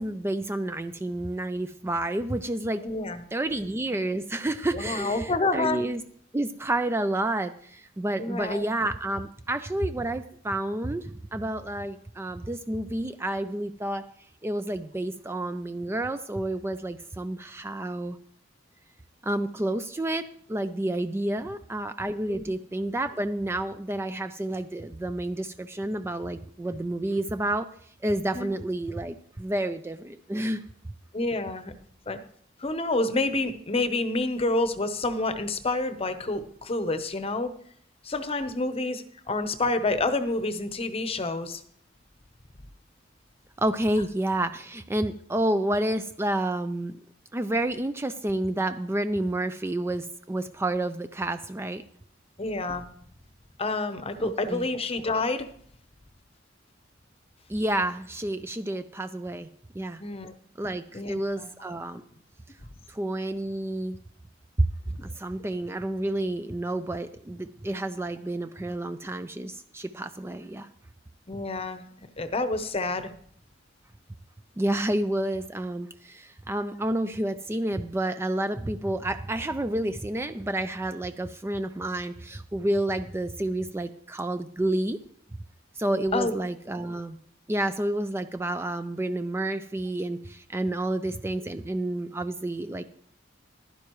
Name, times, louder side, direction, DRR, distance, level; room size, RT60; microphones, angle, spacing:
voice 1, 0.0-2.8 3.3-6.0 6.3-14.1 14.4-18.2 19.2-27.7 28.0-30.6 43.6-46.9 47.3-51.8 54.2-54.7 57.5-59.5 59.7-60.0 60.6-62.0 62.9-64.0 64.6-64.7 65.0-70.7 74.6-85.0 85.8-87.2 87.5-92.8, right 1 dB, 15° right, 10 dB, 0.4 m, -29 dB
voice 2, 2.8-3.2 4.7-5.8 8.2-8.6 21.4-21.5 22.3-22.5 28.3-28.5 31.1-31.7 32.1-32.2 32.6-37.5 38.0-41.6 52.4-52.8 53.6-55.5 60.0-60.3 60.9-61.5 71.3-71.8 72.2-73.1 86.1-86.4, left 2 dB, 30° left, 10 dB, 0.8 m, -28 dB
15.0 x 11.5 x 3.1 m, 0.62 s
head